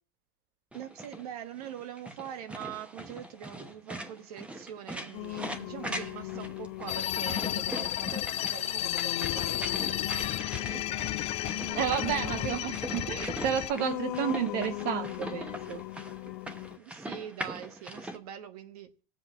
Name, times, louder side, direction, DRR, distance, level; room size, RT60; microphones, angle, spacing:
sound 1, 0.7-18.2, right 1 dB, 5° right, 0.9 m, -42 dB
voice 1, 0.7-10.9 12.2-13.0 16.8-18.9, right 10 dB, 85° right, 1.3 m, -44 dB
Singing, 5.1-16.8, left 17 dB, 90° left, 0.5 m, -40 dB
sound 2, 6.9-13.7, left 13 dB, 35° left, 0.4 m, -32 dB
voice 2, 11.7-15.8, right 9 dB, 50° right, 0.6 m, -31 dB
19.5 x 7.6 x 2.9 m
supercardioid pair, 130°, 19 cm